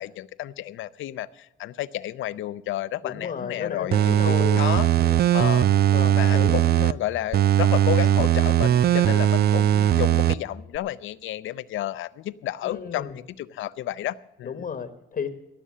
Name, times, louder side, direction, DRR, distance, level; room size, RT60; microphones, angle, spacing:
voice 1, 0.0-4.9 5.3-5.7 6.1-14.5, left 13 dB, 80° left, 16 dB, 0.6 m, -31 dB
voice 2, 3.0-4.6 5.0-5.2 5.9-6.6 12.6-13.2 14.4-15.3, left 6 dB, 45° left, 10 dB, 1.2 m, -33 dB
sound 1, 3.9-6.9 7.3-10.3 10.7-10.8, right 11 dB, 55° right, 0.5 m, -19 dB
18.5 x 7.0 x 7.3 m, 0.93 s
cardioid pair, 90°, 20 cm